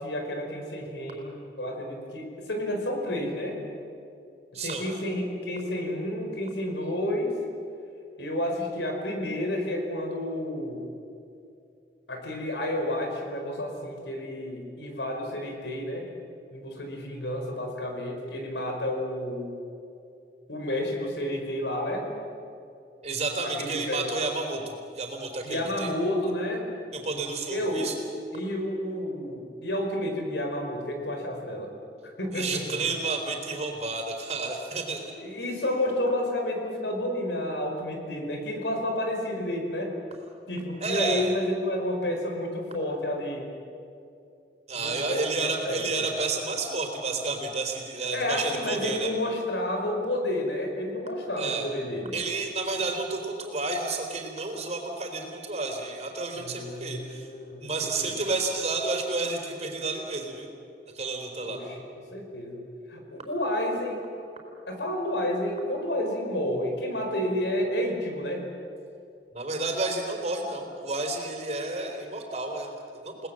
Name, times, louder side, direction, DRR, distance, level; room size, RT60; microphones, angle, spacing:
voice 1, 0.0-3.6 4.6-7.4 8.2-10.8 12.1-16.1 16.5-19.5 20.5-22.1 23.4-24.1 25.4-26.7 27.5-27.9 28.3-31.7 32.0-32.6 35.2-39.9 40.5-43.5 44.8-46.0 48.1-52.2 56.3-58.2 61.4-61.8 62.1-62.6 62.9-64.0 64.7-68.4, left 1 dB, 85° left, 3 dB, 5.0 m, -30 dB
voice 2, 4.5-4.9 23.0-25.9 26.9-27.9 32.3-35.0 40.8-41.3 44.7-49.1 51.4-51.7 52.1-57.3 57.6-60.5 60.9-61.6 69.3-73.3, right 3 dB, 40° right, 3 dB, 3.9 m, -31 dB
29.5 x 19.5 x 7.7 m, 2.6 s
head